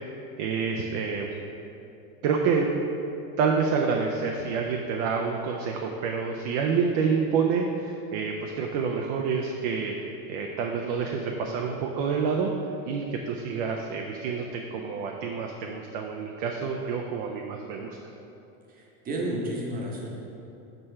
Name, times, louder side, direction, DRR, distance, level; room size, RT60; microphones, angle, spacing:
voice 1, 0.4-1.3 2.2-2.7 3.4-10.0 10.3-12.5 12.9-18.0, right 5 dB, 45° right, 1 dB, 0.4 m, -28 dB
voice 2, 18.7-20.1, right 1 dB, 20° right, -2 dB, 0.8 m, -32 dB
6.7 x 4.3 x 4.3 m, 2.8 s
supercardioid pair, 155°, 43 cm